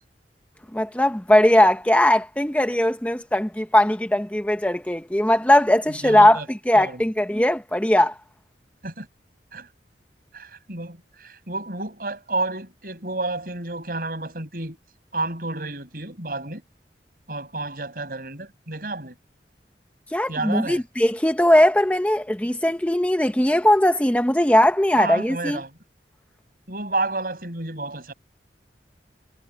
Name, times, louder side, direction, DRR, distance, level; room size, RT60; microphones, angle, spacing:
voice 1, 0.7-6.4 6.7-8.1 20.1-25.6, left 1 dB, 10° left, 0.7 m, -19 dB
voice 2, 5.9-6.5 6.8-7.0 8.8-9.1 9.5-9.7 10.3-14.8 15.1-16.6 17.3-19.1 20.3-20.8 25.0-25.7 26.7-28.1, right 2 dB, 55° right, 5.9 m, -30 dB
head